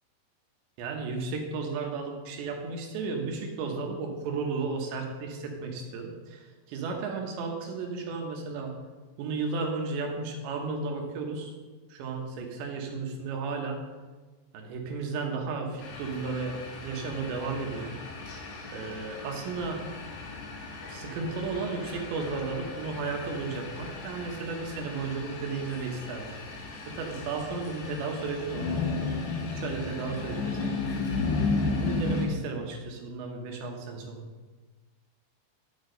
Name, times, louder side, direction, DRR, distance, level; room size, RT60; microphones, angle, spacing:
voice 1, 0.8-8.7 9.2-11.5 11.9-13.8 14.5-16.6 16.8-18.0 18.3-18.4 18.7-19.8 20.9-26.3 26.9-28.8 29.1-29.2 29.6-30.8 31.8-34.2, right 4 dB, 85° right, 2 dB, 3.5 m, -34 dB
sound 1, 15.8-32.3, left 3 dB, 75° left, 3.6 m, -34 dB
10.0 x 8.7 x 3.9 m, 1.3 s
omnidirectional pair, 5.0 m